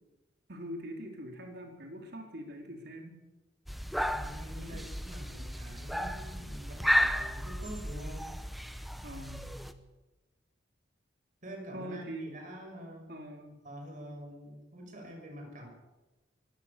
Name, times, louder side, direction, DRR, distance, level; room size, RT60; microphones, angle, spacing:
voice 1, 0.5-3.2 4.6-4.8 9.0-9.6 11.7-12.3 13.1-13.6, equal, 60° right, 2 dB, 4.1 m, -43 dB
sound 1, 3.7-9.7, equal, ahead, 1.0 m, -33 dB
voice 2, 4.1-8.3 11.4-13.1 13.6-15.7, equal, 45° right, 2 dB, 6.5 m, -46 dB
23.5 x 16.0 x 6.9 m, 1.1 s
head